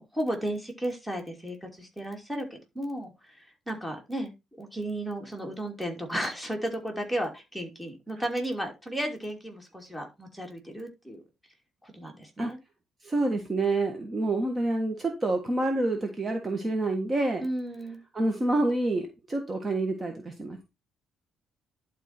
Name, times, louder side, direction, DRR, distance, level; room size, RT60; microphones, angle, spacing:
voice 1, 0.0-4.3 4.6-11.2 11.8-12.6 17.4-18.0, right 1 dB, ahead, 2 dB, 2.8 m, -34 dB
voice 2, 13.0-17.4 18.1-20.7, right 2 dB, 25° right, 4 dB, 1.5 m, -28 dB
11.0 x 4.6 x 4.4 m, 0.24 s
cardioid pair, 120°, 0 cm